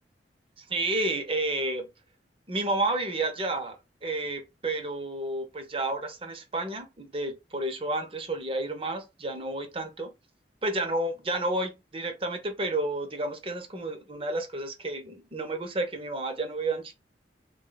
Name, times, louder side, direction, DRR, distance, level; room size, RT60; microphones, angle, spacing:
voice 1, 0.6-1.9 2.5-10.1 10.6-16.9, right 2 dB, 30° right, 0.7 m, -31 dB
3.6 x 2.2 x 3.9 m
head